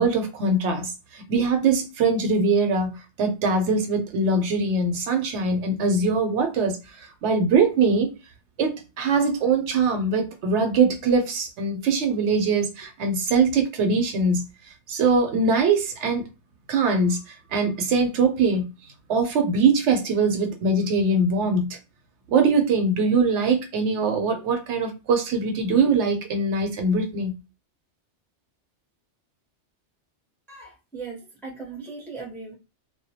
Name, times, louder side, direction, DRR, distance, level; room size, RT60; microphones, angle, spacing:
voice 1, 0.0-6.8 7.2-8.1 8.6-14.4 14.9-16.2 16.7-18.7 19.1-21.8 22.3-27.3, right 4 dB, 75° right, 0.9 m, -22 dB
voice 2, 30.5-32.5, right 4 dB, 5° left, 0.5 m, -38 dB
2.2 x 2.1 x 2.7 m
omnidirectional pair, 1.2 m